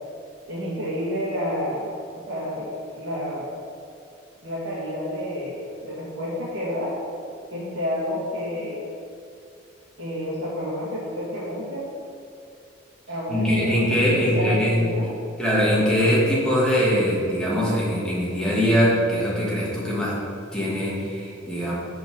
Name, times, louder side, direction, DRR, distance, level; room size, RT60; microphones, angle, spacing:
voice 1, 0.5-1.9 2.3-3.5 4.4-7.0 7.5-8.8 10.0-11.9 13.1-15.1, equal, 90° right, -10 dB, 2.2 m, -29 dB
voice 2, 13.3-14.8 15.4-20.2 20.5-21.7, equal, 5° left, -8 dB, 2.4 m, -22 dB
6.9 x 5.9 x 7.0 m, 2.5 s
head